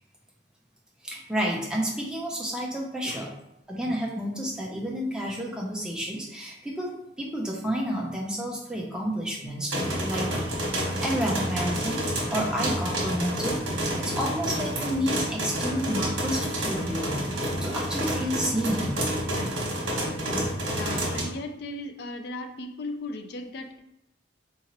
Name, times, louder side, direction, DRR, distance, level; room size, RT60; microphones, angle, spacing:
voice 1, 1.0-3.3 3.7-6.9 7.2-10.3 10.7-12.0 12.3-13.6 14.0-17.2 17.6-19.0, equal, 5° right, -2 dB, 0.5 m, -30 dB
sound 1, 9.7-21.2, right 1 dB, 80° right, 1.1 m, -29 dB
voice 2, 20.7-23.8, left 2 dB, 55° left, 6 dB, 0.4 m, -37 dB
3.7 x 2.8 x 2.9 m, 0.82 s
head